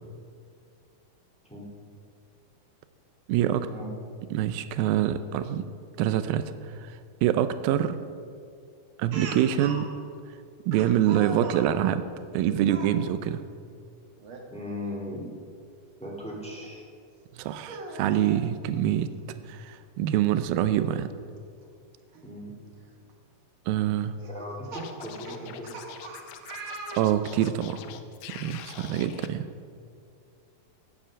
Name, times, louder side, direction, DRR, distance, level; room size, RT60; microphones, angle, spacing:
voice 1, 3.3-3.7 4.3-5.7 6.0-6.5 7.2-8.0 9.0-9.9 10.7-12.0 12.3-13.4 17.4-19.1 19.5-21.1 23.7-24.2 27.0-27.8 28.3-29.5, right 11 dB, 80° right, 11 dB, 2.4 m, -25 dB
Speech, 9.1-9.9 10.7-11.7 12.6-12.9 14.2-14.4 14.9-15.0 16.6-16.7 17.5-18.4 19.7-19.8 20.2-20.3 22.1-22.2 22.9-23.1 24.2-27.5, right 3 dB, 65° right, 1.3 m, -40 dB
voice 2, 14.5-15.3 16.0-16.8 22.2-22.5 24.3-25.8, left 1 dB, ahead, -3 dB, 1.5 m, -38 dB
Scratching (performance technique), 24.7-29.3, left 10 dB, 80° left, 2.0 m, -44 dB
16.5 x 7.9 x 6.3 m, 2.3 s
omnidirectional pair, 4.3 m